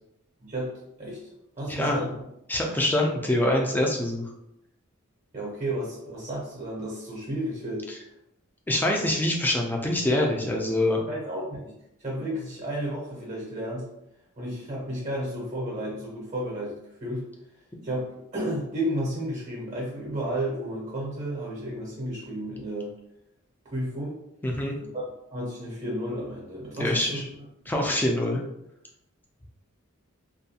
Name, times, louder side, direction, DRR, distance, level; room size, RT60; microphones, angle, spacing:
voice 1, 0.4-1.2 1.6-2.2 5.3-7.9 11.1-11.7 12.0-13.9 14.4-17.3 17.8-22.9 23.6-24.2 24.8-25.0 25.3-27.2, right 1 dB, 35° right, -4 dB, 0.7 m, -32 dB
voice 2, 2.5-4.2 8.7-11.0 24.4-24.8 26.8-27.3 27.7-28.4, left 1 dB, 10° left, 0 dB, 0.3 m, -25 dB
2.4 x 2.2 x 2.7 m, 0.83 s
head